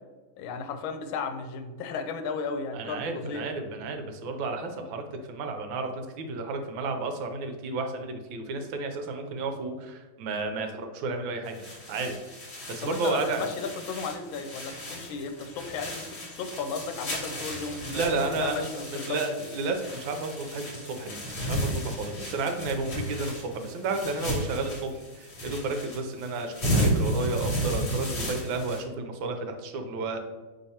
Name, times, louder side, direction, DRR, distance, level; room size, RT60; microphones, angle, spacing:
voice 1, 0.4-3.5 12.8-19.2, left 5 dB, 80° left, 7 dB, 1.4 m, -34 dB
voice 2, 2.7-12.1 12.7-13.5 17.9-30.2, right 3 dB, 75° right, 5 dB, 1.3 m, -32 dB
sound 1, 11.4-28.8, equal, 40° left, 1.2 m, -33 dB
5.8 x 3.2 x 2.8 m, 1.3 s
omnidirectional pair, 2.2 m